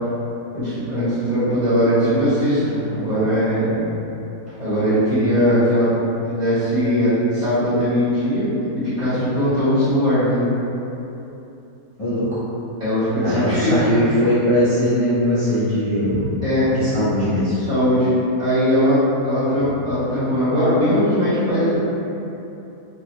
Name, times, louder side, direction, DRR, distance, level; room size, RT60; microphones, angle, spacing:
voice 1, 0.5-3.8 4.6-5.9 6.3-8.5 8.7-10.5 12.8-13.8 16.4-16.7 17.6-18.1 18.4-21.8, equal, 30° right, -14 dB, 1.2 m, -19 dB
voice 2, 13.2-16.3 16.7-17.5, equal, 45° left, -14 dB, 0.4 m, -20 dB
3.0 x 2.9 x 2.6 m, 2.9 s
omnidirectional pair, 1.7 m